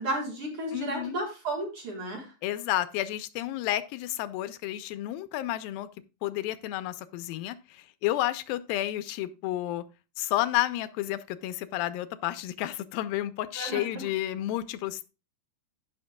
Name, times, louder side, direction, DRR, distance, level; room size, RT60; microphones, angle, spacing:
voice 1, 0.0-2.3 13.6-14.1, right 1 dB, 45° right, 2.2 m, -33 dB
voice 2, 0.7-1.2 2.4-5.9 6.2-9.8 10.2-15.1, left 14 dB, 85° left, 2.3 m, -31 dB
16.0 x 5.8 x 2.2 m
omnidirectional pair, 4.1 m